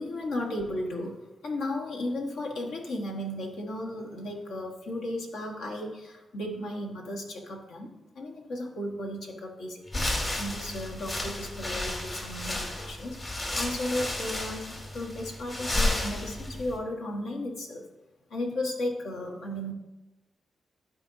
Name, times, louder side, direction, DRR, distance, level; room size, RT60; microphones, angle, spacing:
voice 1, 0.0-7.9 8.1-10.0 10.4-17.8 18.3-19.7, left 1 dB, 80° left, -1 dB, 1.4 m, -35 dB
sound 1, 9.9-16.8, left 1 dB, 40° left, 2.1 m, -32 dB
12.0 x 4.5 x 2.7 m, 1.0 s
supercardioid pair, 55°, 0 cm